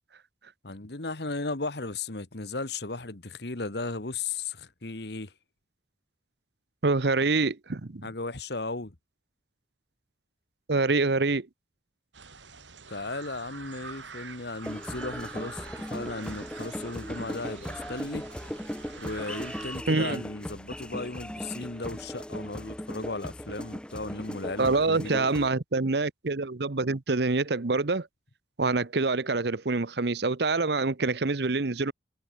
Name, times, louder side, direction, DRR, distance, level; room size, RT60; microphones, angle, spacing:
voice 1, 0.6-5.3 8.0-8.9 12.9-15.6 15.9-18.2 19.0-25.2, left 3 dB, 60° left, 1.6 m, -36 dB
voice 2, 6.8-8.1 10.7-11.5 19.9-20.2 24.6-28.1 28.6-31.9, right 3 dB, 65° right, 0.9 m, -26 dB
sound 1, 12.1-19.8, right 5 dB, 85° right, 4.7 m, -45 dB
sound 2, 14.6-25.5, equal, 5° left, 1.1 m, -38 dB
head